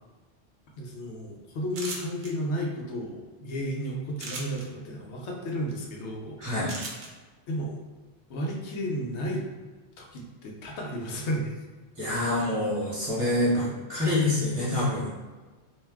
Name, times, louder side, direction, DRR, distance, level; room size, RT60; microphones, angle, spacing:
voice 1, 0.8-6.8 7.5-7.8 8.3-9.4 10.0-11.6, equal, 85° left, -1 dB, 0.9 m, -33 dB
sound 1, 1.7-2.3 4.2-4.6 6.7-7.1, right 3 dB, 70° right, 0.8 m, -36 dB
voice 2, 6.4-6.7 12.0-15.1, left 1 dB, 30° right, -8 dB, 0.9 m, -26 dB
2.5 x 2.2 x 3.3 m, 1.3 s
omnidirectional pair, 1.1 m